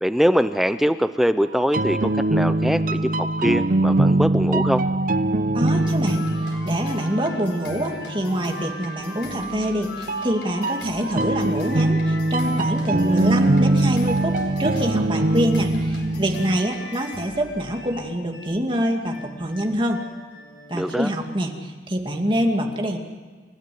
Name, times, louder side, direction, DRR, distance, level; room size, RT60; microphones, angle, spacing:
voice 1, 0.0-4.8 20.7-21.1, equal, ahead, 10 dB, 0.6 m, -22 dB
sound 1, 1.5-8.2 10.1-16.6, right 2 dB, 50° right, 0.7 m, -22 dB
voice 2, 5.5-20.0 20.7-23.0, equal, 30° right, 2 dB, 2.4 m, -25 dB
sound 2, 5.7-20.8, equal, 85° left, 4.5 m, -37 dB
29.5 x 14.0 x 7.8 m, 1.5 s
head